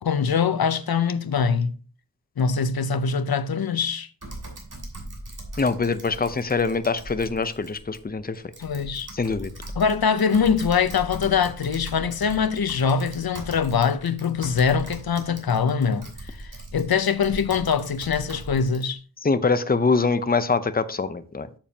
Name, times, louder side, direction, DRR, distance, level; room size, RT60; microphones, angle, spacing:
voice 1, 0.0-1.7 2.4-4.1 8.6-9.1 9.8-16.1 16.4-19.0, left 6 dB, 85° left, 0.6 m, -23 dB
Typing, 4.2-18.8, right 1 dB, 60° right, 2.8 m, -40 dB
voice 2, 5.6-8.3 9.1-9.5 19.2-21.5, left 4 dB, 25° left, 0.6 m, -24 dB
8.9 x 7.2 x 2.8 m
wide cardioid pair, 55°, 36 cm